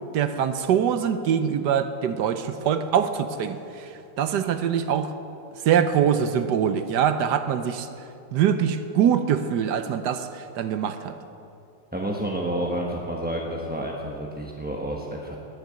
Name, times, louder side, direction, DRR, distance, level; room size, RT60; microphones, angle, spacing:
voice 1, 0.1-3.9 4.2-5.1 5.6-7.9 8.3-11.2, right 8 dB, 70° right, 10 dB, 1.1 m, -23 dB
voice 2, 11.9-15.4, right 1 dB, 10° right, -2 dB, 0.6 m, -29 dB
19.5 x 6.6 x 8.6 m, 2.7 s
omnidirectional pair, 2.1 m